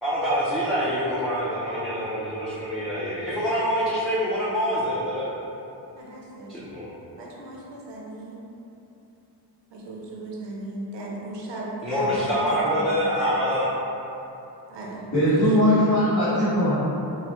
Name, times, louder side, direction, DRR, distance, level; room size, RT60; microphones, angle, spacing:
voice 1, 0.0-5.3 6.5-6.9 11.8-13.7, equal, ahead, -11 dB, 0.5 m, -25 dB
voice 2, 6.0-6.6 7.2-8.4 9.7-12.8 14.7-15.3, right 2 dB, 85° right, -3 dB, 0.8 m, -37 dB
voice 3, 15.1-16.7, equal, 60° left, -17 dB, 1.5 m, -20 dB
5.4 x 2.1 x 3.1 m, 2.9 s
wide cardioid pair, 140°, 42 cm